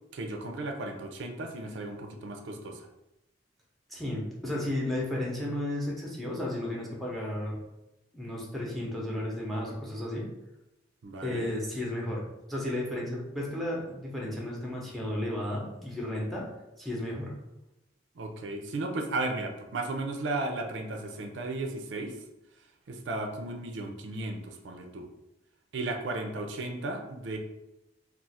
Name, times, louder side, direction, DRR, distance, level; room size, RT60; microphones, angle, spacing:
voice 1, 0.1-2.9 11.0-11.5 18.2-22.2 22.9-25.1 25.7-27.4, right 2 dB, 70° right, 4 dB, 0.4 m, -35 dB
voice 2, 3.9-7.6 8.1-10.3 11.2-12.2 12.5-16.5 16.8-17.3, left 1 dB, ahead, -3 dB, 0.7 m, -33 dB
2.4 x 2.4 x 4.1 m, 0.93 s
head